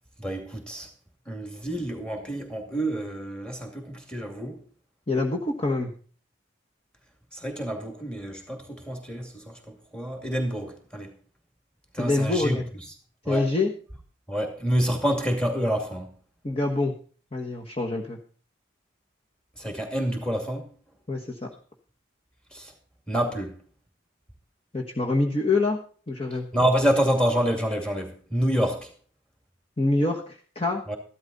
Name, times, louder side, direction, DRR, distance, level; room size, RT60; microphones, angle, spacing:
voice 1, 0.2-0.9 1.3-4.6 7.3-11.1 11.9-12.6 13.2-13.5 14.3-16.1 19.6-20.7 22.5-22.7 23.1-23.6 26.5-28.9 30.9-31.0, equal, 5° left, 2.4 m, -27 dB
voice 2, 5.1-5.9 12.0-12.6 13.3-13.7 16.4-16.9 17.3-18.2 21.1-21.5 24.7-25.8 26.1-26.5 29.8-30.8, left 2 dB, 30° left, 1.2 m, -25 dB
14.0 x 12.0 x 4.1 m
head